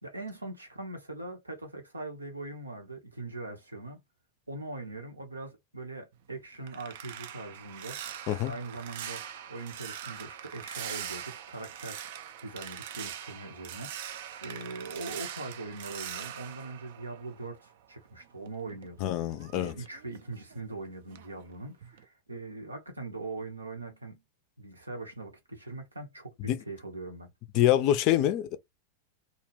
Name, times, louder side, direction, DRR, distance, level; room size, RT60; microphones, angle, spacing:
voice 1, 0.0-4.0 4.5-8.2 8.4-12.0 12.4-19.1 19.5-24.2 24.6-27.3, right 2 dB, 80° right, 0.7 m, -41 dB
sound 1, 6.1-17.8 18.1-20.8 21.1-21.4 21.8-22.0, right 10 dB, 55° right, 0.3 m, -42 dB
voice 2, 19.0-19.7 26.4-26.6 27.5-28.6, left 12 dB, 40° left, 0.4 m, -25 dB
2.3 x 2.1 x 3.1 m
figure-of-eight pair, 90°, 0 cm